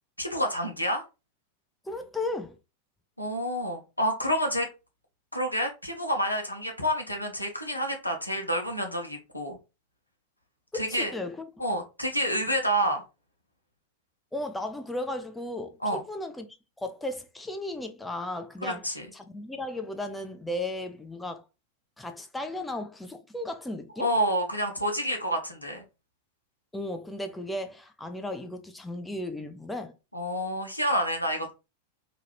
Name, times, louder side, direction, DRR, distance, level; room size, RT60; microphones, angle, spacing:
voice 1, 0.2-1.0 3.2-4.7 5.3-9.6 10.7-11.1 11.6-13.0 15.8-16.0 18.6-19.1 24.0-25.8 30.1-31.5, equal, 85° left, 0.8 m, -28 dB
voice 2, 1.9-2.6 10.7-11.5 14.3-16.5 16.8-21.5 22.0-24.1 26.7-29.9, left 1 dB, 5° left, 0.4 m, -35 dB
2.9 x 2.3 x 3.1 m
figure-of-eight pair, 90°, 0 cm